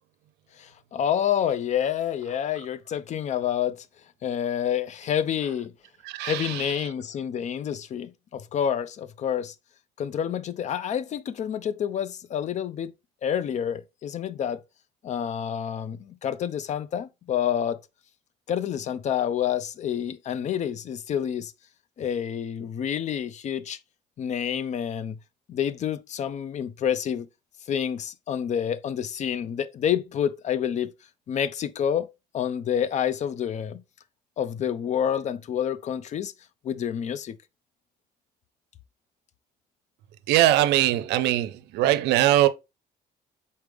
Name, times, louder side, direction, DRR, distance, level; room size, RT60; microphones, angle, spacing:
voice 1, 0.6-3.9 4.2-5.7 6.2-9.5 10.0-12.9 13.2-14.6 15.0-17.8 18.5-21.5 22.0-23.8 24.2-25.2 25.5-27.3 27.7-30.9 31.3-32.1 32.3-33.8 34.4-36.3 36.6-37.4, left 9 dB, 45° left, 0.4 m, -28 dB
voice 2, 6.0-6.8 40.3-42.5, right 14 dB, 85° right, 0.5 m, -22 dB
4.2 x 3.4 x 3.3 m
cardioid pair, 110°, 17 cm